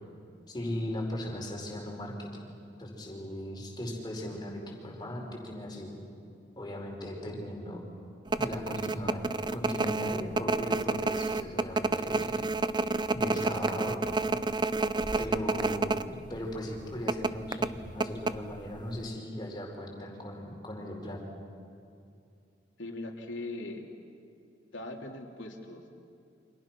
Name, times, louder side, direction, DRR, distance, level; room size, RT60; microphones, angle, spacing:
voice 1, 0.5-2.4 2.8-6.0 6.6-7.8 8.3-12.4 13.1-14.0 15.2-21.2, left 1 dB, 25° left, 0 dB, 4.8 m, -38 dB
sound 1, 8.3-16.1 16.3-16.4 17.1-18.8 19.0-19.1, right 3 dB, 25° right, 0.6 m, -29 dB
voice 2, 22.8-23.8 24.7-25.9, left 2 dB, 85° left, 1 dB, 3.0 m, -40 dB
29.5 x 26.0 x 6.1 m, 2.5 s
head